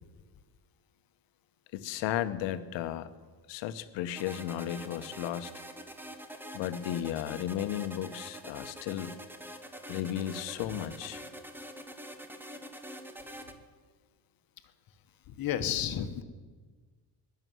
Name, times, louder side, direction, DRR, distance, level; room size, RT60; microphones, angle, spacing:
voice 1, 1.7-3.1 3.5-5.5 6.5-9.2 9.9-11.2, left 11 dB, 80° left, 12 dB, 1.1 m, -34 dB
sound 1, 4.2-13.5, equal, 5° right, 1.1 m, -45 dB
voice 2, 15.3-16.2, left 9 dB, 50° left, 10 dB, 1.3 m, -31 dB
20.0 x 7.0 x 9.5 m, 1.5 s
cardioid pair, 135°, 44 cm